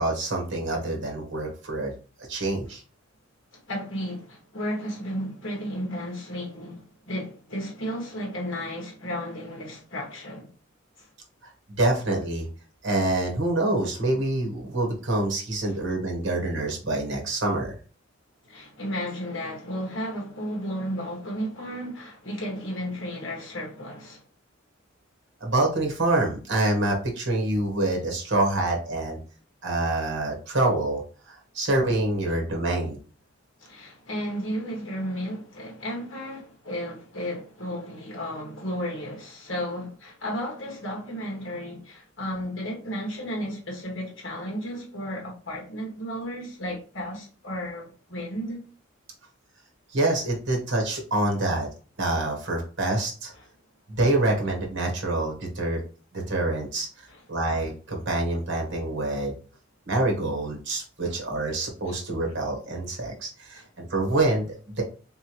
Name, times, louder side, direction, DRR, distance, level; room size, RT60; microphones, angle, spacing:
voice 1, 0.0-1.9 2.3-2.8 11.4-11.5 11.8-12.5 12.8-17.7 25.4-29.2 29.6-33.0 49.9-51.7 52.0-53.3 54.0-55.8 56.1-59.4 59.9-64.8, right 2 dB, 60° right, 1.2 m, -26 dB
voice 2, 3.5-10.5 11.0-11.1 15.7-15.8 18.4-24.2 33.6-48.6 57.1-57.2 61.1-61.2 63.5-63.7, equal, 65° left, 1.8 m, -33 dB
3.6 x 3.3 x 3.0 m
head